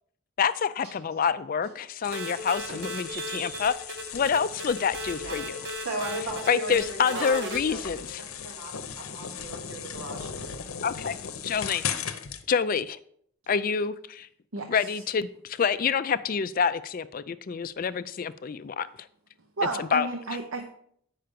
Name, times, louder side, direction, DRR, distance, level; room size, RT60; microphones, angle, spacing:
voice 1, 0.4-3.7 4.1-5.6 6.5-8.2 10.8-11.2 11.4-11.8 12.5-13.0 13.5-14.3 14.7-18.9 19.8-20.1, left 6 dB, 40° left, 14 dB, 0.3 m, -27 dB
sound 1, 2.0-12.4, left 8 dB, 75° left, 0.7 m, -38 dB
sound 2, 2.1-7.6, right 1 dB, 55° right, 1.1 m, -37 dB
voice 2, 2.7-3.7 5.2-10.6, right 2 dB, 85° right, -1 dB, 2.5 m, -38 dB
voice 3, 19.6-20.7, right 3 dB, 70° right, 5 dB, 0.8 m, -31 dB
8.8 x 5.7 x 5.1 m, 0.66 s
head